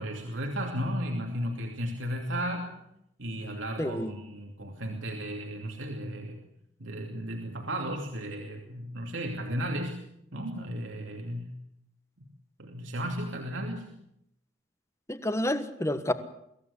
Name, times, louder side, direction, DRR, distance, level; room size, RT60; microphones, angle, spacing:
voice 1, 0.0-2.7 3.2-6.4 6.8-10.0 10.3-11.5 12.6-13.9, equal, 75° right, 1 dB, 2.9 m, -34 dB
voice 2, 3.8-4.1 15.1-16.1, left 1 dB, 15° left, 10 dB, 1.4 m, -29 dB
24.5 x 16.0 x 8.4 m, 0.76 s
head